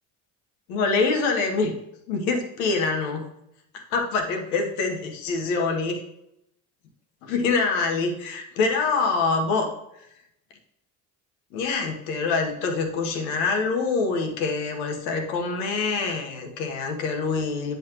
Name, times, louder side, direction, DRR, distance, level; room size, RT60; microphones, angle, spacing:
voice 1, 0.7-1.8 2.1-3.3 3.9-6.0 7.2-9.7 11.5-17.8, left 4 dB, 90° left, 3 dB, 1.3 m, -25 dB
9.2 x 5.7 x 3.0 m, 0.81 s
supercardioid pair, 85°, 41 cm